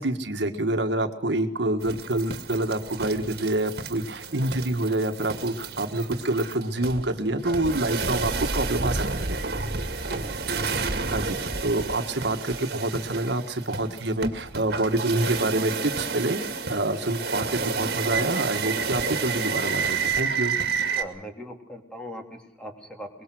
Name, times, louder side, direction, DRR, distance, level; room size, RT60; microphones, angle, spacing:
voice 1, 0.0-9.4 11.1-16.4 16.7-20.6, right 2 dB, 75° right, 6 dB, 1.6 m, -27 dB
sound 1, 1.8-21.0, right 4 dB, 60° right, 2.2 m, -30 dB
voice 2, 9.9-10.3 20.9-23.1, equal, 5° left, 3 dB, 3.0 m, -40 dB
23.5 x 21.5 x 6.3 m, 0.79 s
head